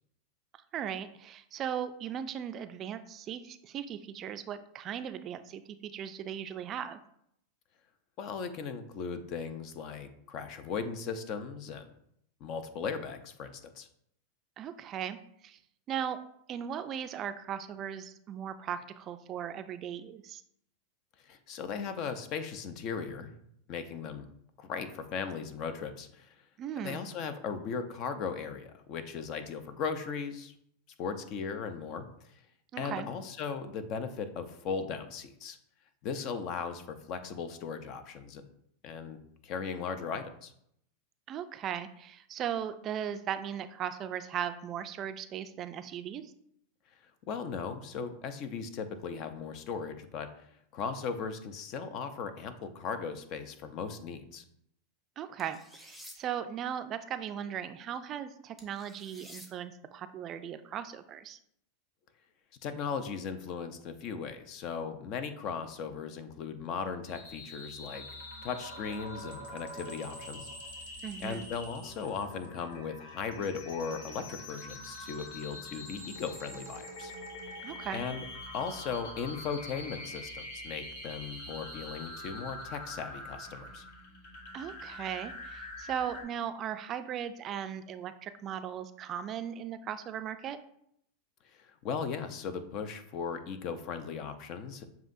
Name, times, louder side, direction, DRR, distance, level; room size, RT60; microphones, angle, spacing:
voice 1, 0.7-7.0 14.6-15.2 15.4-15.6 15.9-16.2 16.5-20.4 26.6-27.0 32.7-33.1 41.3-46.3 55.2-61.4 71.0-71.5 77.6-78.0 84.5-90.6, right 9 dB, 40° right, 10 dB, 0.3 m, -38 dB
voice 2, 8.2-11.9 12.4-13.9 21.3-23.3 23.7-24.3 24.6-26.3 26.8-30.5 31.0-32.1 32.3-32.4 32.8-35.6 36.0-38.4 38.8-40.5 47.3-54.4 62.6-68.0 68.4-70.5 71.2-77.1 77.9-78.2 78.5-83.8 91.5-94.8, left 6 dB, 50° left, 9 dB, 0.6 m, -37 dB
sound 1, 55.4-56.2 58.6-59.5, left 1 dB, 15° left, 0.9 m, -50 dB
sound 2, 67.1-86.2, left 1 dB, 75° left, 1.4 m, -45 dB
7.1 x 2.8 x 2.6 m, 0.72 s
hypercardioid pair, 105°, 0 cm